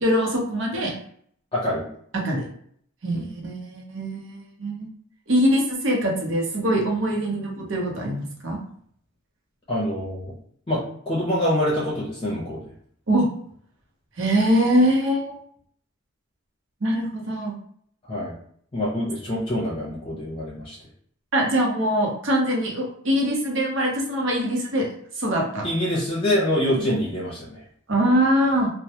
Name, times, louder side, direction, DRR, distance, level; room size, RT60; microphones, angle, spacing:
voice 1, 0.0-0.9 2.1-2.5 3.0-4.9 5.3-8.6 13.1-13.3 14.2-15.4 16.8-17.5 21.3-24.9 25.2-25.7 26.8-26.9 27.9-28.7, equal, 65° right, -1 dB, 0.7 m, -23 dB
voice 2, 1.5-1.9 3.1-3.3 9.7-10.3 10.7-12.6 18.1-18.3 18.7-20.8 25.6-27.6, left 1 dB, 25° left, -5 dB, 0.6 m, -25 dB
2.1 x 2.1 x 2.8 m, 0.62 s
head